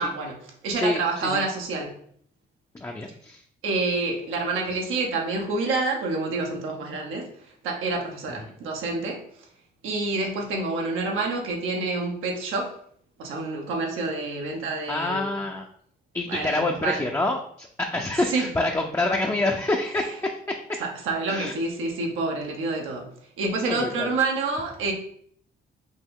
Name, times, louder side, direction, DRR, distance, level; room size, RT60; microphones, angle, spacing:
voice 1, 0.0-2.0 3.6-7.3 7.6-9.2 9.8-12.8 13.2-15.3 16.3-17.0 18.3-18.5 20.8-23.1 23.4-24.9, right 3 dB, 90° right, 1 dB, 1.1 m, -28 dB
voice 2, 0.7-1.4 2.7-3.4 8.3-8.5 14.9-15.7 16.1-20.8 21.3-21.5 23.7-24.1, left 2 dB, 15° left, 1 dB, 0.5 m, -27 dB
5.2 x 2.7 x 3.7 m, 0.63 s
cardioid pair, 90°, 20 cm